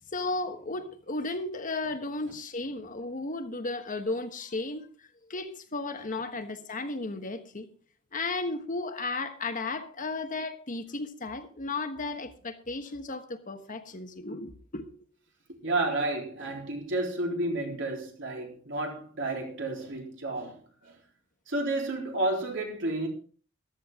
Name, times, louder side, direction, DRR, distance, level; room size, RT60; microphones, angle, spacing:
voice 1, 0.1-4.9 5.3-7.7 8.1-14.9, left 3 dB, 40° left, 1.3 m, -34 dB
voice 2, 15.6-20.9 21.5-23.1, right 2 dB, 65° right, 3.9 m, -31 dB
14.0 x 12.5 x 3.7 m
head